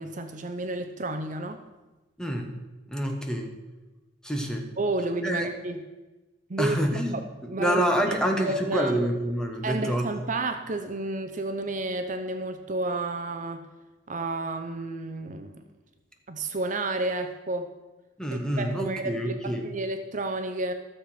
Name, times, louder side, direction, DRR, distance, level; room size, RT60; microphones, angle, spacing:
voice 1, 0.0-1.6 4.8-5.8 6.5-7.0 7.5-7.8 8.1-8.9 9.6-13.6 14.1-15.6 16.3-17.7 18.6-20.7, right 2 dB, 45° right, 7 dB, 0.7 m, -31 dB
voice 2, 2.2-2.5 2.9-3.5 4.2-4.7 5.2-5.5 6.6-7.1 7.6-10.1 18.2-19.7, equal, 5° left, 3 dB, 1.3 m, -27 dB
13.0 x 7.0 x 5.9 m, 1.1 s
head